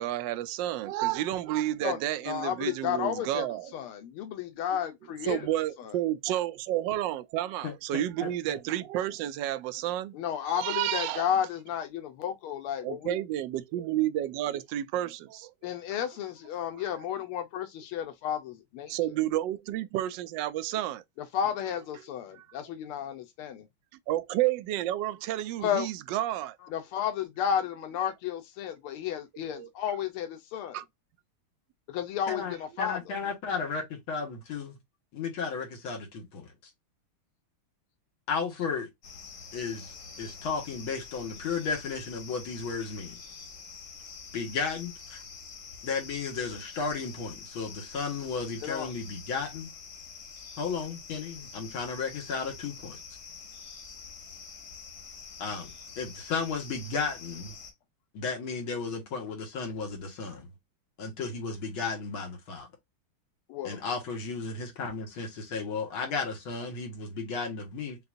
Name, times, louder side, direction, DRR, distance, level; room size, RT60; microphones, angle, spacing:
voice 1, 0.0-3.7 5.2-10.2 10.5-11.3 12.8-15.5 16.7-16.8 18.9-21.0 22.3-22.5 24.1-26.6 29.3-29.7 30.7-30.8, right 13 dB, 75° right, 1.1 m, -31 dB
voice 2, 2.3-3.5 3.7-5.5 5.8-5.9 10.1-13.2 15.6-18.9 21.3-23.6 25.6-25.9 26.7-30.8 31.9-33.2 48.6-48.9 63.5-63.8, left 9 dB, 90° left, 1.6 m, -32 dB
voice 3, 7.6-8.6 32.3-34.8 35.1-36.5 38.3-38.9 39.5-43.2 44.3-45.2 45.8-49.7 50.6-53.0 55.4-57.5 58.1-60.5 61.0-62.7 63.6-68.0, left 5 dB, 75° left, 2.1 m, -34 dB
sound 1, 39.0-57.7, left 5 dB, 55° left, 2.1 m, -46 dB
6.6 x 2.3 x 2.5 m
omnidirectional pair, 2.3 m